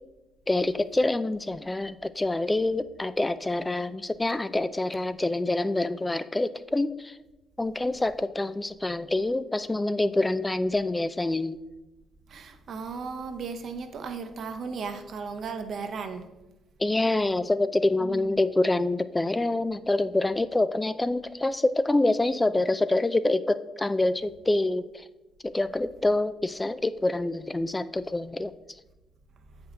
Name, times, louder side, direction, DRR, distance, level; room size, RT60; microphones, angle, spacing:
voice 1, 0.5-7.2 7.6-11.6 16.8-25.0 25.4-28.5, left 2 dB, 20° left, 13 dB, 0.4 m, -26 dB
voice 2, 12.3-16.3 18.0-18.4, right 5 dB, 60° right, 7 dB, 0.8 m, -36 dB
7.9 x 5.3 x 4.0 m, 1.0 s
hypercardioid pair, 50°, 0 cm